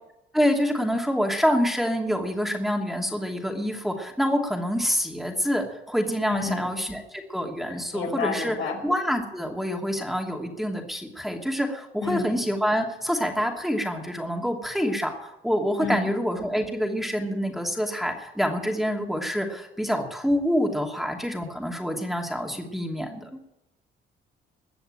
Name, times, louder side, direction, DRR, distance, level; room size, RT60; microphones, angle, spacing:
voice 1, 0.3-8.6 8.8-23.4, equal, ahead, 1 dB, 2.8 m, -26 dB
voice 2, 6.3-6.7 7.7-8.8 12.0-12.4 15.8-16.1, left 5 dB, 75° left, 2 dB, 5.2 m, -30 dB
21.0 x 7.1 x 8.9 m, 0.89 s
cardioid pair, 90°, 20 cm